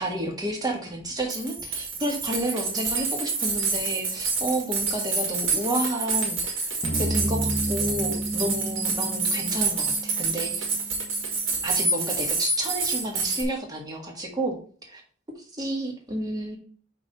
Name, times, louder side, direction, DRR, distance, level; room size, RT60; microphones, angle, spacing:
voice 1, 0.0-10.6 11.6-14.6 14.9-15.0 15.5-16.6, right 1 dB, 20° right, 1 dB, 1.6 m, -31 dB
sound 1, 1.0-1.1 1.3-13.4, right 4 dB, 80° right, 2.4 m, -28 dB
sound 2, 6.8-11.2, right 1 dB, 40° left, 1.2 m, -31 dB
5.4 x 3.9 x 5.4 m, 0.43 s
head